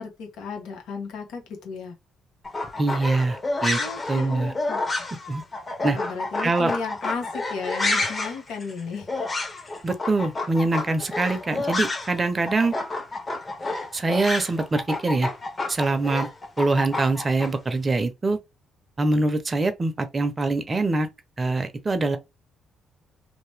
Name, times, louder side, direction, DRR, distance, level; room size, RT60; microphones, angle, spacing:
voice 1, 0.0-1.9 3.8-4.8 5.9-9.1, left 5 dB, 90° left, 1.0 m, -34 dB
sound 1, 2.4-12.2 12.5-17.5, left 2 dB, 30° left, 0.9 m, -29 dB
voice 2, 2.8-3.8 4.1-4.5 5.3-5.4 5.8-6.0 6.4-6.7 9.8-12.7 13.9-15.3 15.7-16.3 16.6-18.4 19.0-21.1 21.4-22.2, right 3 dB, 30° right, 0.6 m, -24 dB
2.8 x 2.1 x 3.3 m
cardioid pair, 90°, 0 cm